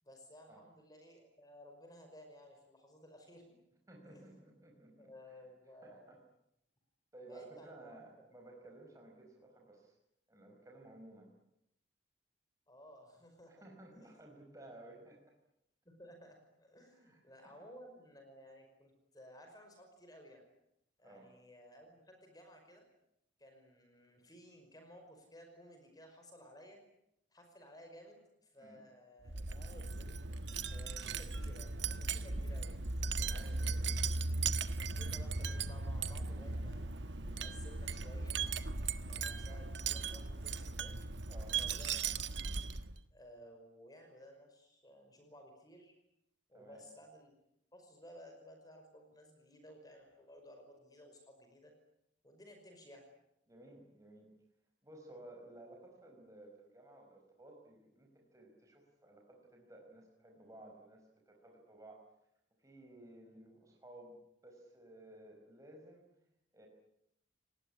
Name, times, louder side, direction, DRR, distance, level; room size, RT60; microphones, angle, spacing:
voice 1, 0.0-3.6 4.0-4.5 5.0-6.2 7.3-8.3 12.7-13.6 13.9-14.4 15.9-20.4 21.0-22.8 23.4-26.8 27.3-30.2 30.7-32.8 33.5-33.6 34.8-38.4 39.0-41.0 41.6-42.1 42.4-42.5 43.1-45.9 46.5-47.4 47.7-51.7 52.2-53.0, equal, 20° left, 4 dB, 5.4 m, -57 dB
voice 2, 3.9-5.1 5.8-6.2 7.1-9.9 10.3-11.3 13.5-15.3 16.9-17.5 21.0-21.3 28.6-28.8 33.2-33.9 39.4-39.6 41.3-41.6 46.5-46.8 53.5-54.3 54.8-62.1 62.6-64.2 64.4-66.1 66.5-66.7, right 1 dB, 15° right, 0 dB, 5.0 m, -56 dB
Wind chime, 29.3-43.0, right 4 dB, 70° right, 1.4 m, -38 dB
29.5 x 19.5 x 9.8 m, 0.80 s
head